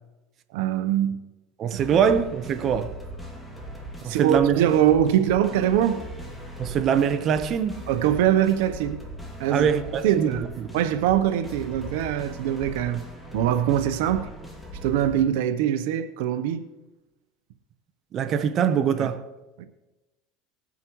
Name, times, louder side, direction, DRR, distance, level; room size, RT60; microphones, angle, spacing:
voice 1, 0.5-1.2 4.0-6.0 7.9-9.0 9.4-9.7 10.0-10.5 10.7-13.0 13.3-14.3 14.8-16.6 19.0-19.1 19.6-19.7, right 10 dB, 80° right, 0.8 m, -23 dB
voice 2, 1.6-3.0 4.0-4.6 6.6-7.9 9.5-10.7 18.1-19.3, right 7 dB, 40° right, 0.9 m, -23 dB
sound 1, 1.8-15.2, equal, 5° left, 2.5 m, -39 dB
20.0 x 9.5 x 3.1 m
supercardioid pair, 125°, 0 cm